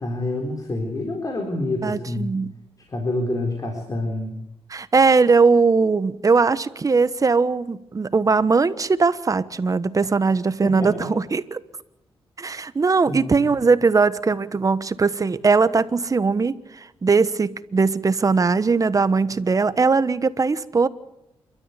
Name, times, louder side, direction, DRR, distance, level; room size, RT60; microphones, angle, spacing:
voice 1, 0.0-2.4 2.9-4.4 10.6-11.1 13.1-13.6, left 1 dB, 35° left, 2 dB, 4.1 m, -27 dB
voice 2, 1.8-2.5 4.7-11.6 12.4-20.9, right 4 dB, 35° right, 14 dB, 1.2 m, -20 dB
28.0 x 13.0 x 8.3 m, 0.87 s
cardioid pair, 75°, 10 cm